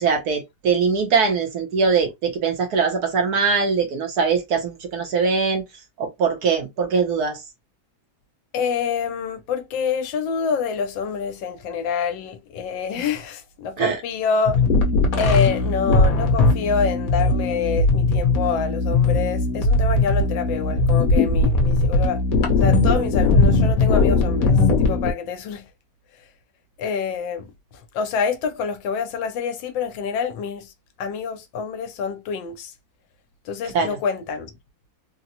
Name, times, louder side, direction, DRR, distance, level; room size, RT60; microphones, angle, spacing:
voice 1, 0.0-5.6 6.0-7.4 13.8-14.0 33.6-34.0, right 5 dB, 65° right, 1.1 m, -22 dB
voice 2, 8.5-14.7 15.1-22.2 22.5-25.6 26.8-27.5 27.9-30.7 31.0-32.7 33.5-34.5, left 6 dB, 80° left, 1.3 m, -26 dB
sound 1, 14.5-25.1, left 3 dB, 55° left, 1.1 m, -19 dB
3.8 x 2.0 x 2.7 m
omnidirectional pair, 2.1 m